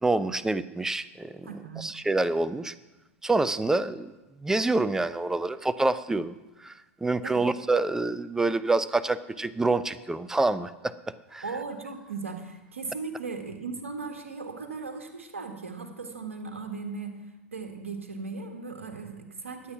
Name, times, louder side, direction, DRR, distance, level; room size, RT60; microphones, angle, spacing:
voice 1, 0.0-1.5 1.8-2.7 3.2-4.1 4.4-6.7 7.0-10.9 11.3-11.4, right 2 dB, 5° right, 16 dB, 0.5 m, -27 dB
voice 2, 1.4-1.9 7.2-7.4 11.4-17.1 17.5-19.7, right 4 dB, 75° right, 4 dB, 1.8 m, -37 dB
14.0 x 8.7 x 5.9 m, 1.1 s
figure-of-eight pair, 90°, 7 cm